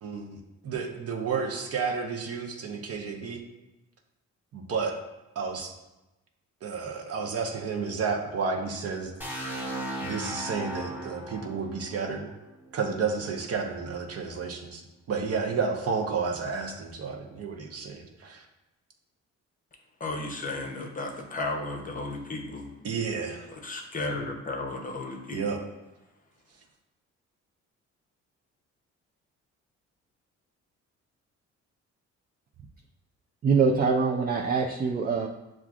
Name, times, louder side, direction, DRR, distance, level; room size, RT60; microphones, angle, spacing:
voice 1, 0.0-3.4 4.5-4.9 5.4-5.7 6.6-9.1 10.0-12.3 12.7-14.8 15.1-18.5 22.8-23.5 25.3-25.6, right 5 dB, 55° right, 1 dB, 0.7 m, -31 dB
sound 1, 9.2-13.0, right 1 dB, 5° right, 0.9 m, -37 dB
voice 2, 20.0-22.7 23.5-25.4, left 2 dB, 25° left, 2 dB, 0.7 m, -34 dB
voice 3, 33.4-35.3, right 5 dB, 30° right, 1 dB, 0.4 m, -24 dB
7.1 x 2.4 x 2.4 m, 1.0 s
cardioid pair, 90°, 30 cm